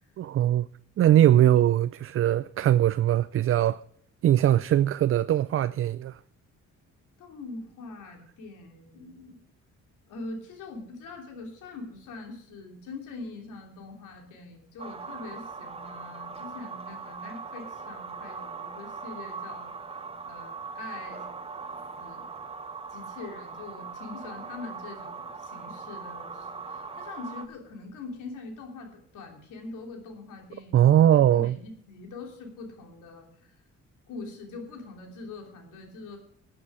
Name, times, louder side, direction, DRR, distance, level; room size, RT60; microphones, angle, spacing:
voice 1, 0.2-0.7 1.0-3.8 4.2-6.2 30.7-31.6, right 11 dB, 45° right, 0.4 m, -21 dB
voice 2, 7.2-9.4 10.1-19.7 20.2-21.2 22.0-22.3 22.9-30.9 31.3-33.5 34.1-36.2, left 3 dB, 85° left, 3.0 m, -43 dB
sound 1, 14.8-27.5, right 5 dB, 20° right, 1.0 m, -40 dB
13.0 x 7.7 x 6.1 m
cardioid pair, 90°, 30 cm